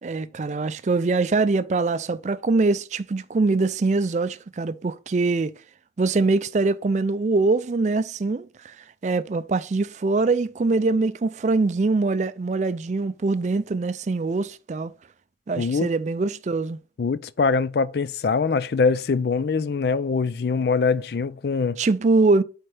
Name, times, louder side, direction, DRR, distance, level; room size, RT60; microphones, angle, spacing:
voice 1, 0.0-5.5 6.0-8.8 9.0-14.9 15.5-16.8 21.8-22.4, right 3 dB, 40° right, 0.4 m, -23 dB
voice 2, 15.6-15.9 17.0-21.8, left 4 dB, 60° left, 0.4 m, -23 dB
7.9 x 4.3 x 3.3 m
head